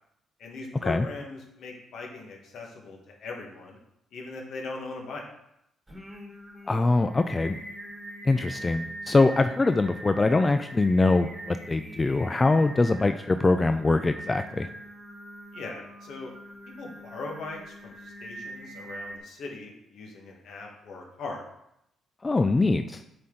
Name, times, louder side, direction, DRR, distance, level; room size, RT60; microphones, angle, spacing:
voice 1, 0.4-3.8 4.1-5.2 15.5-16.3 16.7-21.4, left 3 dB, 70° left, 0 dB, 1.4 m, -40 dB
Singing, 5.9-19.2, right 1 dB, 10° right, 1.4 m, -43 dB
voice 2, 6.7-7.6 8.2-14.7 22.2-23.0, left 3 dB, 25° left, 9 dB, 0.3 m, -23 dB
7.6 x 4.3 x 3.8 m, 0.81 s
cardioid pair, 90°, 0 cm